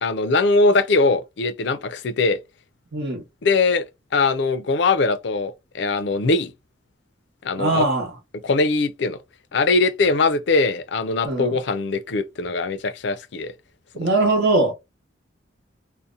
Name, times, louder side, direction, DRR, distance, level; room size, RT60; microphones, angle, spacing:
voice 1, 0.0-2.4 3.4-3.8 4.1-6.5 7.4-7.9 8.4-9.2 9.5-13.5, left 3 dB, 65° left, 0.4 m, -21 dB
voice 2, 2.9-3.2 7.6-8.1 11.2-11.5 13.9-14.7, right 2 dB, 65° right, 0.9 m, -21 dB
2.7 x 2.1 x 2.4 m
head